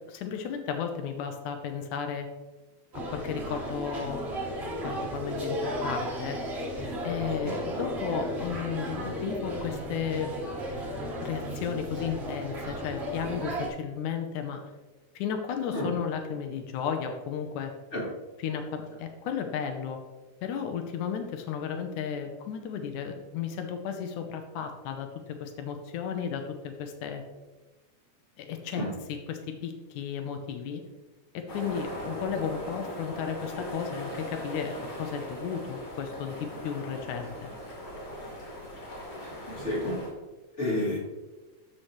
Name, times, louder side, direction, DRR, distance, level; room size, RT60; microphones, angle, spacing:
voice 1, 0.1-2.3 3.1-4.2 4.8-6.4 7.0-10.3 11.2-14.6 15.2-17.7 18.4-20.0 20.4-27.2 28.4-30.8 31.3-37.5, left 7 dB, 85° left, 5 dB, 2.3 m, -34 dB
sound 1, 2.9-13.7, equal, 30° right, 1.3 m, -34 dB
sound 2, 31.5-40.1, equal, 50° left, 4.0 m, -39 dB
voice 2, 39.5-39.9 40.6-41.0, left 1 dB, 25° left, -7 dB, 2.8 m, -30 dB
13.0 x 5.7 x 3.1 m, 1.2 s
omnidirectional pair, 3.5 m